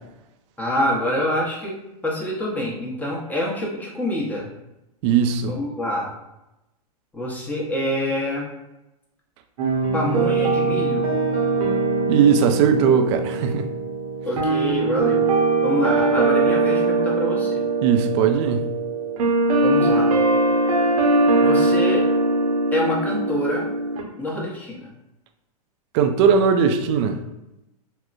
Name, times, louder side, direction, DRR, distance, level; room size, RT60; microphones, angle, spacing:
voice 1, 0.6-4.5 5.5-6.1 7.1-8.5 9.9-11.1 14.2-17.7 19.6-20.1 21.4-22.1 22.7-23.7 24.2-24.9, left 1 dB, 10° left, -3 dB, 0.8 m, -26 dB
voice 2, 5.0-5.6 12.1-13.6 17.8-18.7 25.9-27.2, right 7 dB, 45° right, 6 dB, 0.4 m, -19 dB
sound 1, 9.6-24.0, right 3 dB, 60° right, 0.8 m, -21 dB
3.7 x 2.1 x 2.4 m, 0.93 s
hypercardioid pair, 115°, 20 cm